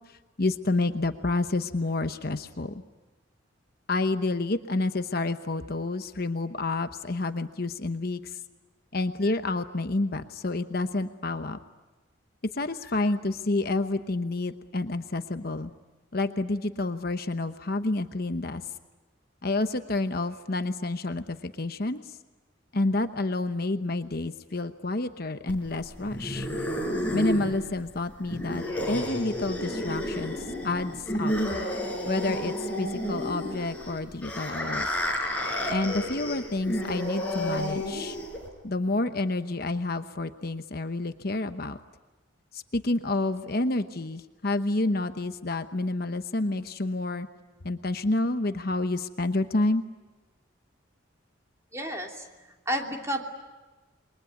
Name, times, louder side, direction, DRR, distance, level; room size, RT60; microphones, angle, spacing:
voice 1, 0.1-2.8 3.9-8.4 8.9-11.6 12.5-15.7 16.1-18.6 19.4-22.0 22.7-26.5 27.1-31.3 32.1-34.9 35.7-38.2 38.6-41.8 42.5-47.3 47.6-49.8, left 2 dB, 50° left, 9 dB, 1.0 m, -29 dB
sound 1, 25.5-38.5, equal, 5° left, 5.7 m, -31 dB
voice 2, 51.7-53.2, equal, 15° right, 1 dB, 2.9 m, -32 dB
28.5 x 22.5 x 9.4 m, 1.2 s
head